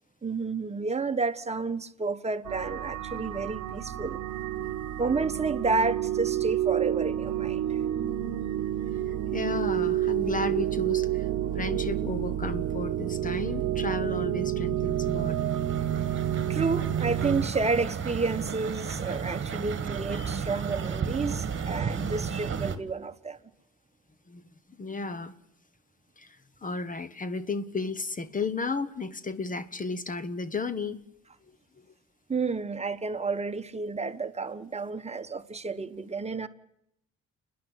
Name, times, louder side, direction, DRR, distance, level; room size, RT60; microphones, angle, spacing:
voice 1, 0.2-4.2 5.0-7.8 16.5-23.4 32.3-36.5, right 4 dB, 20° right, 1.2 m, -30 dB
sound 1, 2.4-17.5, right 12 dB, 85° right, 1.1 m, -29 dB
voice 2, 9.1-11.3 11.5-15.4 24.3-24.4 24.8-25.3 26.2-31.0, left 4 dB, 25° left, 1.0 m, -34 dB
sound 2, 14.9-22.8, right 6 dB, 40° right, 1.5 m, -33 dB
29.5 x 10.5 x 9.8 m
cardioid pair, 90°, 30 cm